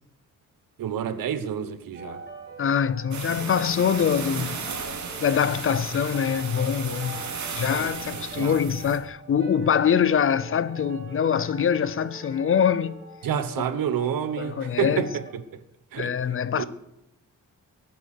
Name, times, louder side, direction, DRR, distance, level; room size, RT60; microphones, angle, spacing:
voice 1, 0.8-2.2 8.3-8.6 13.2-15.1 15.3-15.4 15.9-16.1 16.6-16.7, right 8 dB, 90° right, 1.2 m, -28 dB
sound 1, 1.9-15.3, right 2 dB, 30° right, 4.2 m, -43 dB
voice 2, 2.6-4.6 5.2-7.2 7.5-13.0 13.6-13.7 14.4-15.1 16.0-16.6, left 8 dB, 40° left, 0.6 m, -24 dB
sound 2, 3.1-9.0, right 5 dB, 60° right, 2.9 m, -35 dB
19.0 x 9.3 x 6.6 m
wide cardioid pair, 160°, 33 cm